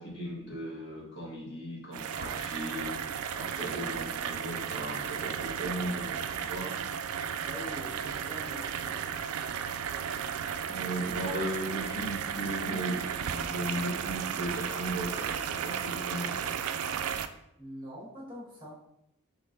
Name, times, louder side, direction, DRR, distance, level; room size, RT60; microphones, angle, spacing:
voice 1, 0.0-2.9 3.3-6.7 10.7-16.5, right 1 dB, 55° left, -4 dB, 1.4 m, -37 dB
sound 1, 1.9-17.3, right 8 dB, 85° right, 0.3 m, -34 dB
voice 2, 7.4-9.1 9.4-10.9 17.6-18.8, equal, 25° right, -5 dB, 1.4 m, -45 dB
5.8 x 3.4 x 2.6 m, 0.77 s
head